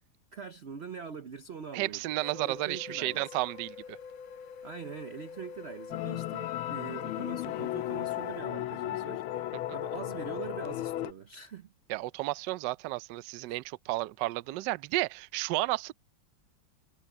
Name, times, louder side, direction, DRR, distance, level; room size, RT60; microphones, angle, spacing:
voice 1, 0.3-3.4 4.6-11.7 13.5-13.6, right 6 dB, 85° right, 0.5 m, -43 dB
voice 2, 1.7-4.0 11.9-15.9, right 18 dB, 70° right, 1.1 m, -32 dB
sound 1, 2.2-8.4, left 6 dB, 70° left, 2.0 m, -46 dB
sound 2, 5.9-11.1, left 14 dB, 85° left, 1.5 m, -35 dB
omnidirectional pair, 2.3 m